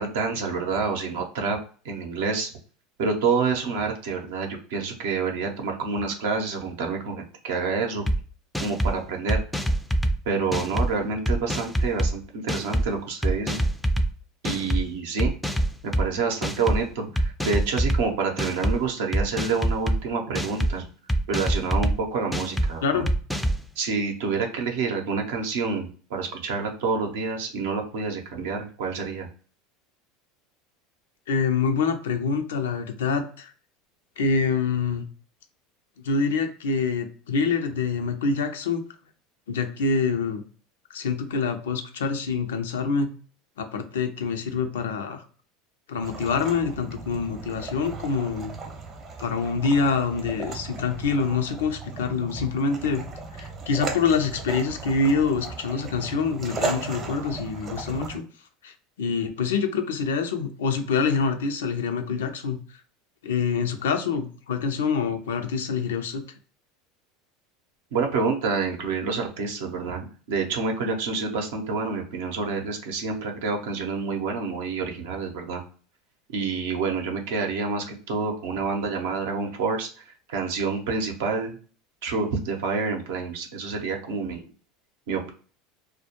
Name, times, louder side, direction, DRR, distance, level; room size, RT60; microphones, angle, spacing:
voice 1, 0.0-1.6 1.8-2.5 3.0-8.0 8.6-9.4 10.3-13.6 14.4-15.3 15.8-20.8 21.3-23.0 23.8-29.3 67.9-70.0 70.3-75.6 76.3-79.9 80.3-81.6 82.0-84.5 85.1-85.3, right 4 dB, 80° right, 3 dB, 0.6 m, -28 dB
sound 1, 8.1-8.2 8.5-8.9 9.3-10.1 10.5-10.9 11.3-12.1 12.5-12.8 13.2-14.1 14.4-14.8 15.2-16.0 16.4-16.8 17.2-18.0 18.4-18.7 19.1-20.0 20.3-20.7 21.1-21.9 22.3-22.7 23.1-23.6, right 1 dB, ahead, 0.3 m, -24 dB
voice 2, 31.3-33.5 34.2-35.0 36.0-38.8 39.5-40.4 40.9-43.1 43.6-45.2 45.9-48.5 49.2-53.0 53.4-58.2 58.6-62.6 63.2-66.2, left 5 dB, 90° left, 6 dB, 0.4 m, -26 dB
sound 2, 46.0-58.2, right 3 dB, 35° right, 0.6 m, -36 dB
2.2 x 2.1 x 2.9 m, 0.42 s
supercardioid pair, 100°, 0 cm